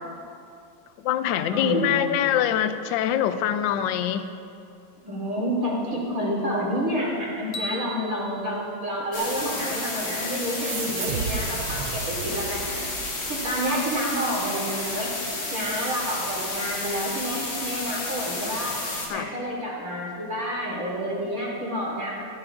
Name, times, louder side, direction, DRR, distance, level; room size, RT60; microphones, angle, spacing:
voice 1, 1.0-4.3 19.1-19.3, left 10 dB, 70° left, 10 dB, 1.2 m, -24 dB
voice 2, 1.5-1.9 5.0-12.8 13.3-15.1 15.5-18.7 19.1-22.1, equal, 40° right, -5 dB, 3.3 m, -29 dB
sound 1, 7.5-9.8, equal, 50° left, 1.1 m, -38 dB
sound 2, 9.1-19.1, left 2 dB, 90° left, 3.3 m, -31 dB
sound 3, 10.6-13.7, right 6 dB, 75° right, 0.8 m, -34 dB
17.5 x 13.5 x 2.6 m, 2.5 s
omnidirectional pair, 2.3 m